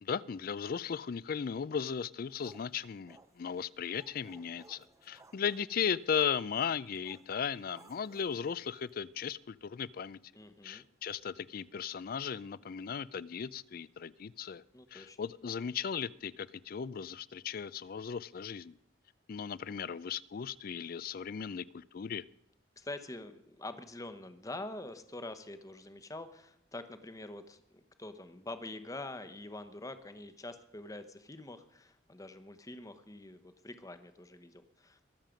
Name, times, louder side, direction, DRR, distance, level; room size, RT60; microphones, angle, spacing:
voice 1, 0.0-10.2 10.6-14.6 14.9-18.8 19.3-22.2, left 7 dB, 50° left, 0.4 m, -36 dB
sound 1, 2.3-9.0, right 2 dB, 15° right, 0.7 m, -61 dB
voice 2, 10.3-10.8 14.7-15.2 22.8-35.0, left 2 dB, 20° left, 0.9 m, -45 dB
22.0 x 7.4 x 5.1 m
head